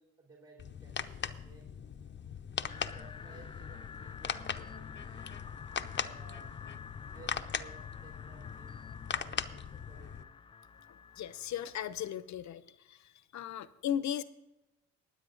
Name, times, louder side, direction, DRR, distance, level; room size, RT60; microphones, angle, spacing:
voice 1, 0.0-1.7 2.5-5.3 5.9-6.6 7.1-10.3, right 3 dB, 50° right, -4 dB, 3.4 m, -58 dB
sound 1, 0.6-10.2, left 7 dB, 35° left, 0.7 m, -40 dB
sound 2, 2.7-12.2, left 6 dB, 20° left, 0.3 m, -50 dB
voice 2, 11.2-12.6 12.9-14.2, left 10 dB, 65° left, 14 dB, 0.9 m, -36 dB
20.0 x 7.9 x 3.9 m, 0.95 s
cardioid pair, 90°, 30 cm